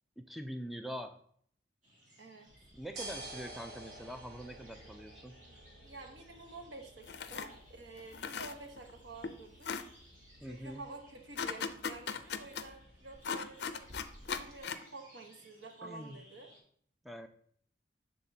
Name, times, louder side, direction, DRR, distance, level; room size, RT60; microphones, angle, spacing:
voice 1, 0.2-1.2 2.7-5.4 10.4-10.8 15.8-16.2 17.0-17.3, equal, ahead, 6 dB, 0.4 m, -44 dB
sound 1, 1.8-16.6, right 1 dB, 40° right, 2.2 m, -62 dB
voice 2, 2.2-2.5 5.8-9.8 10.4-13.8 14.4-16.5, right 2 dB, 85° right, 4 dB, 1.0 m, -50 dB
sound 2, 2.5-14.6, right 1 dB, 60° right, 1.2 m, -53 dB
sound 3, 7.1-7.5 8.0-8.9 9.2-9.3 9.6-9.9 11.4-12.6 13.2-14.8, left 6 dB, 65° left, 0.4 m, -38 dB
11.0 x 3.7 x 2.7 m, 0.63 s
head